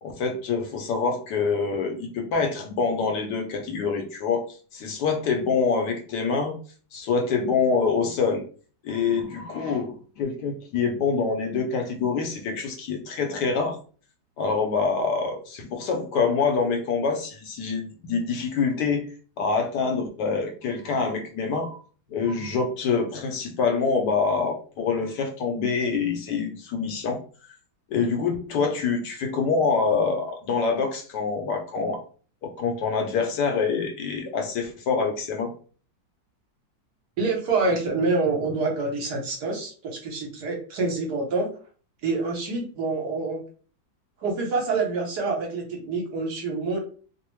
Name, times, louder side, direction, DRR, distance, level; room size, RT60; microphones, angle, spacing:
voice 1, 0.0-6.6 6.9-8.4 8.8-13.8 14.4-19.1 19.4-21.8 22.1-27.2 27.9-32.0 32.4-35.5, left 5 dB, 70° left, 3 dB, 1.1 m, -26 dB
voice 2, 37.2-41.5 42.0-43.4 44.2-46.8, right 3 dB, 65° right, 0 dB, 1.2 m, -26 dB
3.1 x 2.0 x 3.0 m, 0.40 s
omnidirectional pair, 2.0 m